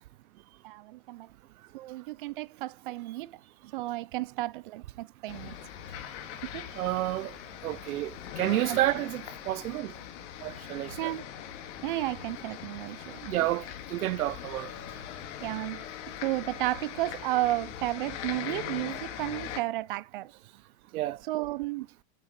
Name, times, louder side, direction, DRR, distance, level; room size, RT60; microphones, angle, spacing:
voice 1, 0.6-1.3 1.7-3.4 3.7-5.5 6.4-6.7 8.7-8.8 11.0-11.2 11.8-13.3 15.4-15.8 16.2-20.3 21.3-21.9, right 17 dB, 40° right, 0.4 m, -33 dB
sound 1, 5.3-19.6, left 10 dB, 55° left, 2.2 m, -41 dB
voice 2, 6.8-7.3 7.6-9.9 10.4-11.1 13.3-14.7 20.9-21.2, right 16 dB, 85° right, 0.7 m, -30 dB
8.0 x 7.5 x 5.4 m
supercardioid pair, 160°, 42 cm